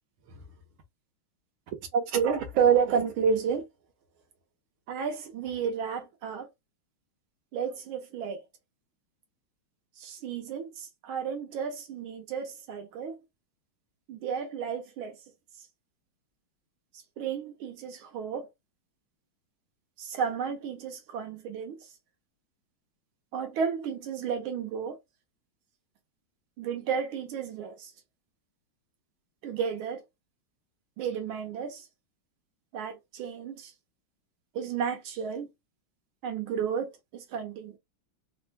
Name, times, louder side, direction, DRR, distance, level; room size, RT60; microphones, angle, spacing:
voice 1, 1.9-3.7 4.9-6.5 7.5-8.4 10.0-13.2 14.1-15.2 17.2-18.5 20.0-21.8 23.3-25.0 26.6-27.9 29.4-30.0 31.0-31.8 32.7-33.7 34.5-35.5 36.2-37.8, right 7 dB, 75° right, 1.7 m, -31 dB
3.7 x 2.2 x 2.4 m
omnidirectional pair, 2.3 m